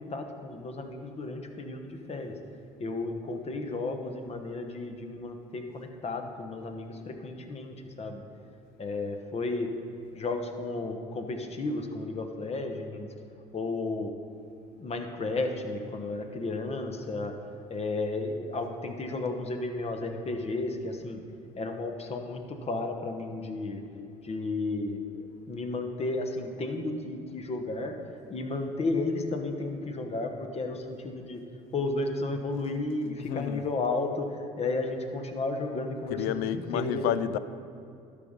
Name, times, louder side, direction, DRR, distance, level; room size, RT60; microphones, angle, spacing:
voice 1, 0.0-2.4 2.8-8.2 8.8-9.7 10.1-13.1 13.5-14.1 14.7-17.3 17.7-21.2 21.6-23.8 24.2-28.0 28.3-31.4 31.7-37.1, left 2 dB, 35° left, 1.1 m, -33 dB
voice 2, 33.3-33.6 36.1-37.4, left 11 dB, 65° left, 0.4 m, -30 dB
12.0 x 5.1 x 5.4 m
hypercardioid pair, 65°, 17 cm